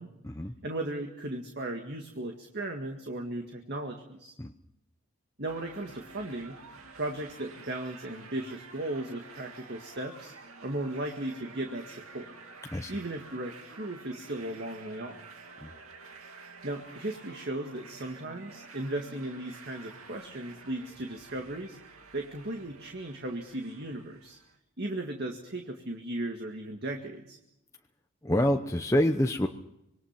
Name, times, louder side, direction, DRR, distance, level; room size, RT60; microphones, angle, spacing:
voice 1, 0.6-4.3 5.4-10.3 10.6-12.3 12.9-15.2 16.6-24.4 24.8-27.4, right 1 dB, 50° right, 3 dB, 1.9 m, -36 dB
sound 1, 5.5-24.6, right 4 dB, 75° right, 2.5 m, -50 dB
voice 2, 28.2-29.5, left 1 dB, 15° left, 3 dB, 0.8 m, -26 dB
26.0 x 21.5 x 5.9 m, 0.83 s
head